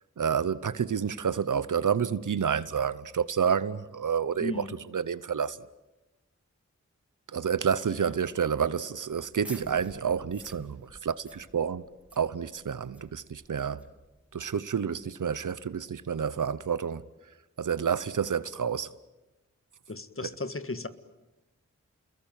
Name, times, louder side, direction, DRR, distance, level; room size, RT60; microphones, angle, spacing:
voice 1, 0.2-5.6 7.3-11.8 12.2-13.8 14.3-17.0 17.6-18.9 20.2-20.3, right 7 dB, 80° right, 1.0 m, -29 dB
voice 2, 4.4-4.7 19.9-20.9, left 2 dB, 45° left, 1.8 m, -35 dB
sound 1, 9.2-14.5, equal, 5° right, 3.0 m, -51 dB
29.5 x 21.5 x 9.1 m
cardioid pair, 50°, 31 cm